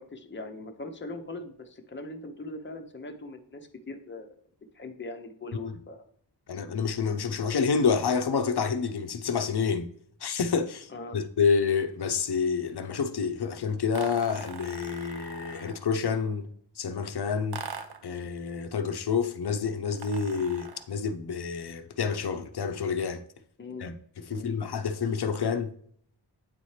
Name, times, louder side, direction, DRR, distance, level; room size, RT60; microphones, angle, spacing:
voice 1, 0.0-4.3 4.7-6.0 10.9-11.2 23.6-23.9 24.3-24.5, left 2 dB, 25° left, 0.7 m, -40 dB
voice 2, 6.5-9.9 10.2-16.5 16.8-17.6 18.0-23.2 23.8-23.9 24.3-25.7, left 5 dB, 60° left, 0.7 m, -28 dB
sound 1, 13.9-15.9 17.5-18.1 19.9-20.9, right 6 dB, 60° right, 0.7 m, -42 dB
8.3 x 4.2 x 3.2 m
wide cardioid pair, 80°, 44 cm